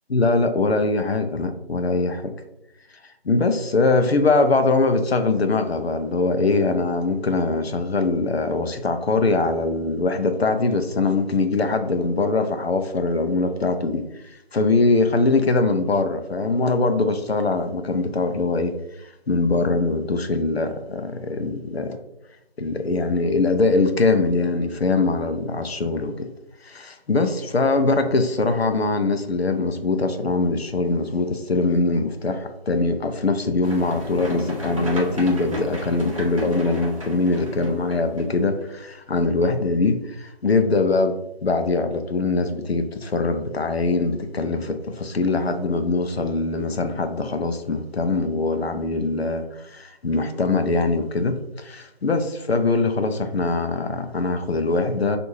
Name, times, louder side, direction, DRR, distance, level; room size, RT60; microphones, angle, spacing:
voice 1, 0.1-2.3 3.2-14.1 14.5-18.7 19.0-22.0 22.6-26.3 26.6-55.2, left 3 dB, 85° left, 0.6 m, -22 dB
sound 1, 33.6-38.6, equal, 35° right, 0.8 m, -33 dB
4.5 x 2.6 x 2.6 m
figure-of-eight pair, 155°, 31 cm